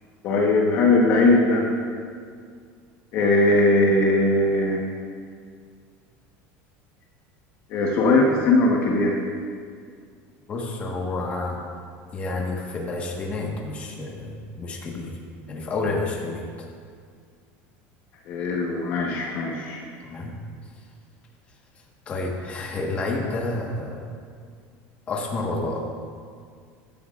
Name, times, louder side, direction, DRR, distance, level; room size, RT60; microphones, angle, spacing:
voice 1, 0.2-1.6 3.1-4.8 7.7-9.2 18.3-19.8, left 2 dB, 45° left, -1 dB, 1.3 m, -20 dB
voice 2, 10.5-11.6 12.1-15.2 15.5-16.7 20.0-20.3 22.1-24.1 25.1-25.8, left 2 dB, 25° left, -1 dB, 1.5 m, -29 dB
15.0 x 12.5 x 2.5 m, 2.2 s
cardioid pair, 170°, 6 cm